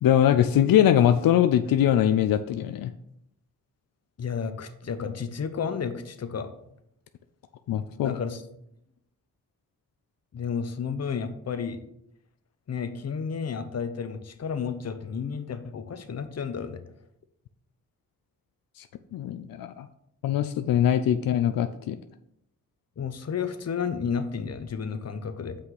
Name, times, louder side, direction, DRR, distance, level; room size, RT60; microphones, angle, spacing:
voice 1, 0.0-2.9 7.7-8.1 19.1-19.9 20.2-22.0, left 10 dB, 85° left, 10 dB, 0.5 m, -22 dB
voice 2, 4.2-6.5 8.0-8.4 10.3-11.8 12.7-16.8 23.0-25.6, left 6 dB, 50° left, 10 dB, 0.8 m, -32 dB
5.8 x 5.0 x 5.9 m, 0.78 s
cardioid pair, 70°, 34 cm